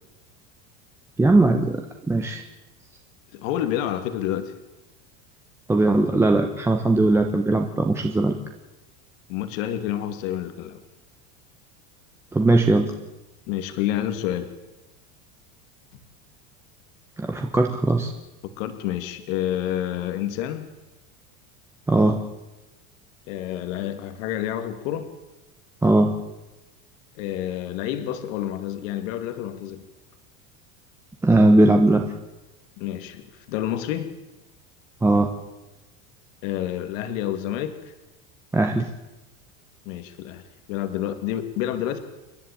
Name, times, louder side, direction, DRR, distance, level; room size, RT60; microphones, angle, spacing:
voice 1, 1.2-2.4 5.7-8.4 12.3-12.9 17.2-18.1 21.9-22.2 25.8-26.1 31.2-32.1 35.0-35.3 38.5-38.9, right 2 dB, 5° right, 4 dB, 1.0 m, -19 dB
voice 2, 3.3-4.5 9.3-10.8 13.5-14.5 18.6-20.7 23.3-25.1 27.2-29.8 32.8-34.1 36.4-37.8 39.9-40.4 40.7-42.0, left 11 dB, 70° left, 9 dB, 2.3 m, -28 dB
29.0 x 11.0 x 8.7 m, 1.0 s
supercardioid pair, 160°, 40 cm